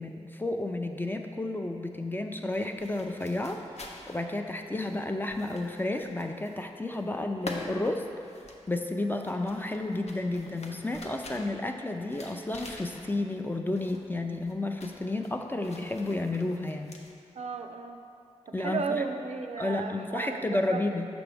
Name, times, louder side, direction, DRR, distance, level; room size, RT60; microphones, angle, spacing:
voice 1, 0.0-3.6 4.1-8.1 8.7-17.0 18.5-19.0 19.6-21.1, left 2 dB, 15° left, 4 dB, 0.4 m, -31 dB
sound 1, 2.5-6.7 6.9-13.4 13.7-14.1 14.3-17.1, left 2 dB, 65° left, 0.7 m, -46 dB
voice 2, 17.4-18.0 18.5-20.8, right 5 dB, 65° right, 6 dB, 0.4 m, -34 dB
6.0 x 6.0 x 3.4 m, 2.5 s
cardioid pair, 60°, 12 cm